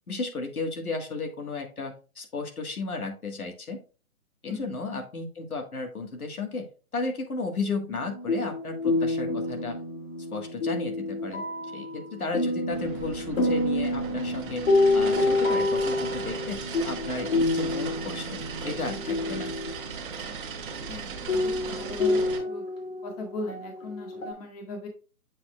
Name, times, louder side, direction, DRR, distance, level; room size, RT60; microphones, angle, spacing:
voice 1, 0.1-3.8 4.4-6.6 6.9-9.8 10.3-11.4 11.7-14.6 14.9-16.6 16.8-19.5, left 3 dB, 85° left, 5 dB, 1.7 m, -34 dB
sound 1, 7.9-19.9 20.8-20.9 21.3-24.3, left 2 dB, 65° left, 2.6 m, -28 dB
sound 2, 12.7-22.4, right 5 dB, 35° right, 1.4 m, -37 dB
voice 2, 20.9-22.2 22.5-22.6 23.0-24.9, left 3 dB, 25° left, 1 dB, 1.8 m, -38 dB
7.5 x 6.3 x 2.3 m, 0.34 s
figure-of-eight pair, 145°, 43 cm